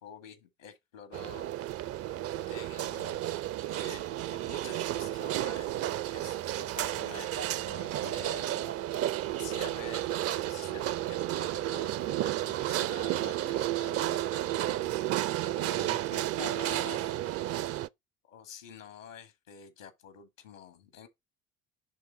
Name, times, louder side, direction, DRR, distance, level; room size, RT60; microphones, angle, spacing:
voice 1, 0.0-1.5 2.5-3.2 3.7-14.7 15.5-17.1 18.2-21.1, left 7 dB, 80° left, 1.8 m, -48 dB
sound 1, 1.1-17.9, right 13 dB, 40° right, 0.5 m, -32 dB
10.5 x 3.6 x 3.9 m
figure-of-eight pair, 55°, 39 cm